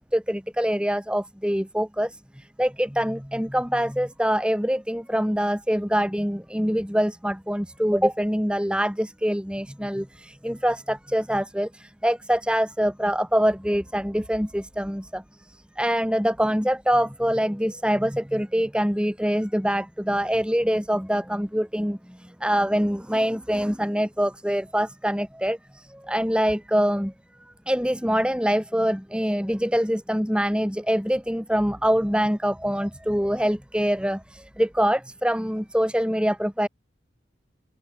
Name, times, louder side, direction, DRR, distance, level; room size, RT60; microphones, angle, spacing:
voice 1, 0.1-27.1 27.7-36.7, equal, 5° right, 4.0 m, -24 dB
open air
head